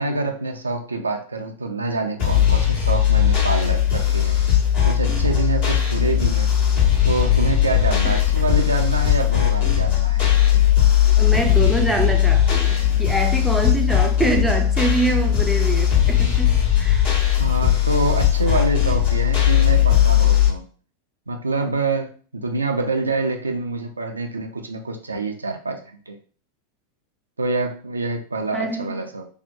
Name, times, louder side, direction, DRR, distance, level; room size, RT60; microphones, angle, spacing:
voice 1, 0.0-4.4 4.8-6.5 7.1-10.2 17.4-20.7 21.3-25.8 26.1-26.2 27.4-29.3, right 3 dB, 80° right, 0.3 m, -26 dB
sound 1, 2.2-20.5, left 10 dB, 45° left, 1.1 m, -18 dB
voice 2, 11.2-17.1 28.5-29.0, right 2 dB, 5° right, 0.4 m, -25 dB
2.6 x 2.1 x 2.5 m
figure-of-eight pair, 90°, 0 cm